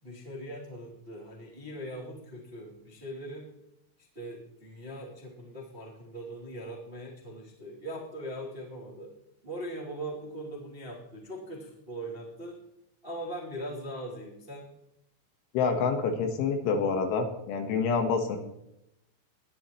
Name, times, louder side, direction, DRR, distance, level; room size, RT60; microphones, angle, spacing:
voice 1, 0.0-3.5 4.1-9.1 9.4-12.6 13.0-14.7, right 1 dB, 20° right, -4 dB, 1.8 m, -40 dB
voice 2, 15.5-18.4, left 5 dB, 75° left, 5 dB, 3.6 m, -27 dB
20.0 x 12.0 x 3.1 m, 0.84 s
omnidirectional pair, 6.0 m